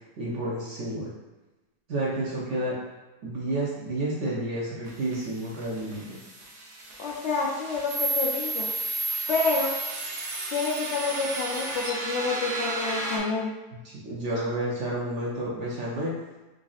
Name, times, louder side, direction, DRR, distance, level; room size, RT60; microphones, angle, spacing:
voice 1, 0.2-1.1 1.9-2.8 3.2-6.2 13.8-16.2, right 1 dB, 60° right, -6 dB, 0.8 m, -30 dB
sound 1, 4.9-13.2, right 2 dB, 90° right, 1.3 m, -32 dB
voice 2, 7.0-8.7 9.3-9.7 10.5-13.5, left 4 dB, 70° left, -2 dB, 0.6 m, -28 dB
4.8 x 2.5 x 2.4 m, 1.1 s
omnidirectional pair, 1.7 m